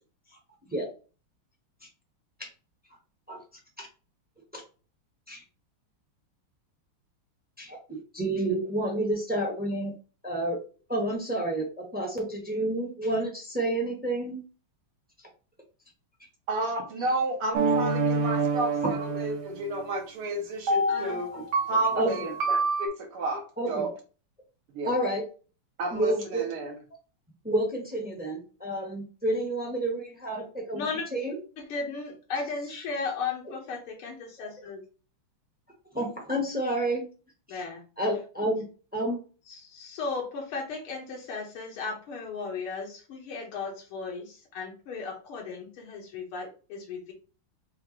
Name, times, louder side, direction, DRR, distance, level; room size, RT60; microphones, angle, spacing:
voice 1, 7.6-9.9 10.2-10.6 10.9-14.4 21.3-22.3 23.6-23.9 24.8-25.2 25.9-26.4 27.4-31.4 35.9-37.0 37.5-37.6 38.0-38.7 38.9-39.2, right 1 dB, 10° right, 0 dB, 0.5 m, -30 dB
voice 2, 16.5-21.3 21.7-23.9 24.7-24.9 25.8-26.7, right 2 dB, 85° right, 1 dB, 2.1 m, -32 dB
sound 1, 17.5-19.8 20.7-22.9, right 3 dB, 65° right, 1.1 m, -27 dB
voice 3, 20.9-21.2 30.7-31.1 31.7-34.8 37.5-37.8 38.4-38.5 39.5-47.1, left 4 dB, 85° left, 0 dB, 2.0 m, -35 dB
6.3 x 2.5 x 3.0 m, 0.36 s
omnidirectional pair, 2.4 m